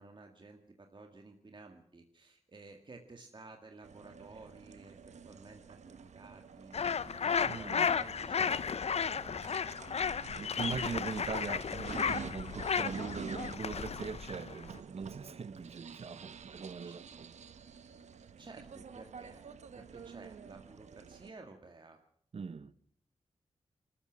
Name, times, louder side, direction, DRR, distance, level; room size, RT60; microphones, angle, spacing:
voice 1, 0.0-5.0 5.2-9.8 10.4-11.2 16.8-17.0 18.4-19.4 19.7-22.0, right 3 dB, 45° right, 2.1 m, -54 dB
sound 1, 3.8-21.3, right 6 dB, 80° right, 1.2 m, -49 dB
sound 2, 6.7-14.8, left 6 dB, 65° left, 0.8 m, -34 dB
voice 2, 7.4-7.9 10.2-17.3 22.3-22.7, right 5 dB, 60° right, 1.0 m, -41 dB
25.5 x 14.5 x 7.5 m
cardioid pair, 50°, 12 cm